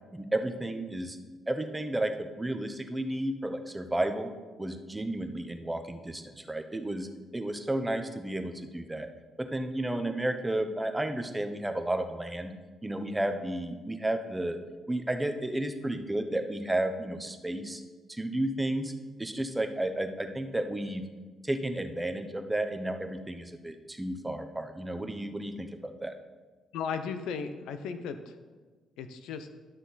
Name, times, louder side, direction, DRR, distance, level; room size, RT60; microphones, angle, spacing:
voice 1, 0.1-1.2 1.5-2.1 2.4-4.3 4.6-7.1 7.3-9.1 9.4-12.5 12.8-14.6 14.9-17.8 18.1-18.9 19.2-21.1 21.4-26.1, right 1 dB, 10° right, 7 dB, 0.8 m, -32 dB
voice 2, 26.7-28.4 29.0-29.5, left 6 dB, 90° left, 9 dB, 0.6 m, -36 dB
11.5 x 6.3 x 4.1 m, 1.3 s
cardioid pair, 90°, 0 cm